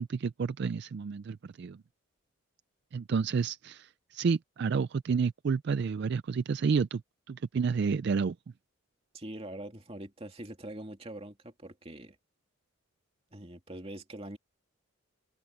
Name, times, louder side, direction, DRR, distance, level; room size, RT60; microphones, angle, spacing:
voice 1, 0.0-1.8 2.9-7.0 7.3-8.4, right 5 dB, 50° right, 0.3 m, -30 dB
voice 2, 9.1-12.2 13.3-14.4, right 1 dB, 25° right, 2.6 m, -43 dB
head